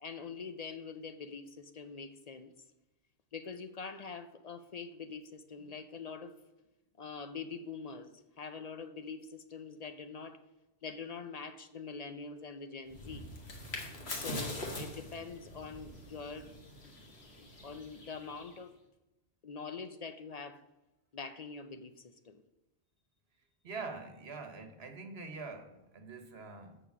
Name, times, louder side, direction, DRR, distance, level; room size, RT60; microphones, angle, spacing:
voice 1, 0.0-2.5 3.3-6.3 7.0-10.4 10.8-13.2 14.1-16.5 17.4-18.7 19.4-20.6 21.1-22.4, left 5 dB, 45° left, 10 dB, 0.6 m, -44 dB
sound 1, 12.9-18.6, left 1 dB, 75° left, 1.9 m, -43 dB
voice 2, 23.6-26.8, right 4 dB, 75° right, 7 dB, 1.4 m, -44 dB
6.9 x 6.6 x 7.3 m, 1.0 s
omnidirectional pair, 1.1 m